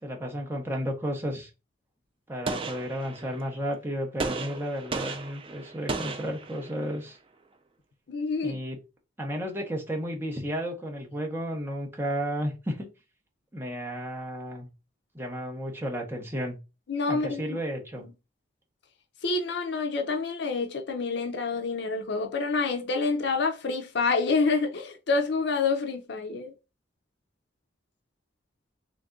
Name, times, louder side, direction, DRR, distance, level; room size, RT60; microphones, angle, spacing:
voice 1, 0.0-1.5 2.3-7.2 8.4-8.8 9.2-12.9 13.5-14.7 15.1-16.6 17.1-18.0, equal, 10° right, 0.9 m, -33 dB
Gunshot gunfire, 2.5-3.5 4.2-7.0, right 3 dB, 30° right, 0.4 m, -35 dB
voice 2, 8.1-8.6 16.9-17.6 19.2-26.5, left 4 dB, 60° left, 0.5 m, -27 dB
3.4 x 2.6 x 3.6 m
head